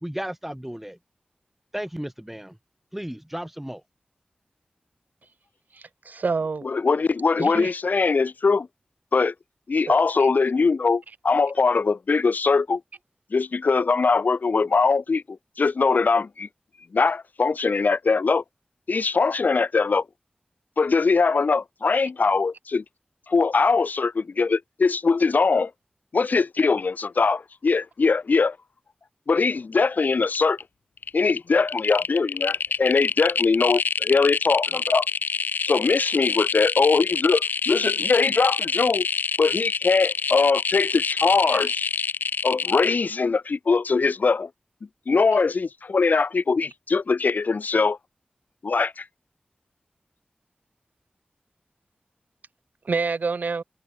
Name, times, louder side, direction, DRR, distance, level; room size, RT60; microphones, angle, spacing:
voice 1, 0.0-1.0 1.7-2.6 2.9-3.8, equal, 5° right, 1.1 m, -34 dB
voice 2, 5.7-6.6 7.4-7.7 9.9-10.0 41.4-41.6 52.9-53.6, right 4 dB, 65° right, 0.5 m, -27 dB
voice 3, 6.6-8.7 9.1-9.3 9.7-12.8 13.3-16.5 16.9-18.4 18.9-20.0 20.8-22.8 23.3-25.7 26.1-28.6 29.3-30.6 31.1-35.1 35.6-39.1 39.4-41.9 42.4-44.5 45.1-48.0 48.6-49.0, left 4 dB, 65° left, 0.7 m, -21 dB
sound 1, 29.5-29.7 30.0-30.6 31.0-42.9, left 5 dB, 85° left, 0.3 m, -26 dB
wide cardioid pair, 80°, 3 cm